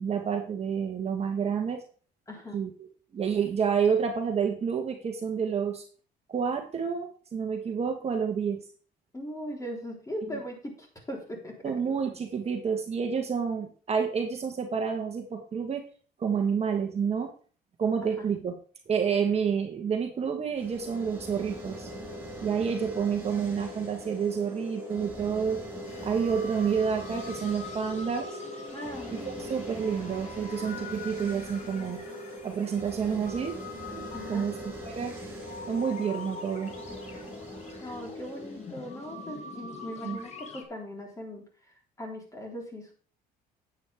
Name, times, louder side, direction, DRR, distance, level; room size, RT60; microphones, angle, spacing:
voice 1, 0.0-1.8 2.5-2.7 3.1-5.8 6.3-8.6 11.6-15.8 16.2-17.3 17.8-18.6 18.9-21.9 22.4-25.6 26.0-28.4 29.1-32.0 32.4-33.6 33.9-35.2 35.7-36.7 40.0-40.2, right 6 dB, 40° right, 3 dB, 1.5 m, -29 dB
voice 2, 2.3-2.6 9.1-11.6 18.2-18.3 28.7-29.3 34.1-34.5 37.8-42.9, equal, 20° left, 0 dB, 3.9 m, -39 dB
sound 1, 20.5-39.6, equal, 15° right, 5.9 m, -41 dB
sound 2, 25.8-40.6, left 4 dB, 40° left, 2.1 m, -44 dB
10.0 x 8.3 x 3.6 m, 0.42 s
cardioid pair, 110°, 17 cm